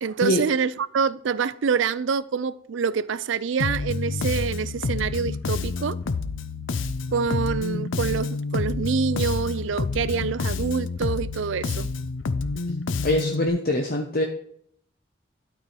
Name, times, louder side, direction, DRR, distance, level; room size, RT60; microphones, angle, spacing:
voice 1, 0.0-6.0 7.1-11.9, right 6 dB, 65° right, 0.4 m, -26 dB
Bass guitar, 3.6-13.5, left 4 dB, 70° left, 0.5 m, -28 dB
voice 2, 13.0-14.2, left 1 dB, 45° left, 0.8 m, -23 dB
12.0 x 4.9 x 4.1 m
head